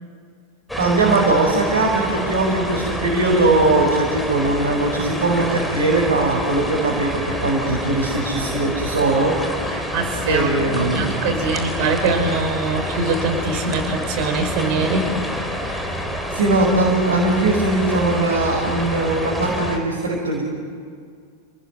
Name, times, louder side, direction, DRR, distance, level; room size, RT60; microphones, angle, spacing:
sound 1, 0.7-19.8, equal, 5° left, 4.0 m, -27 dB
voice 1, 0.8-9.3 10.2-11.2 15.7-15.8 16.3-20.4, right 2 dB, 65° right, -3 dB, 5.3 m, -20 dB
voice 2, 9.9-15.1, right 3 dB, 45° right, 5 dB, 5.3 m, -23 dB
28.5 x 19.5 x 9.4 m, 2.1 s
figure-of-eight pair, 90°, 0 cm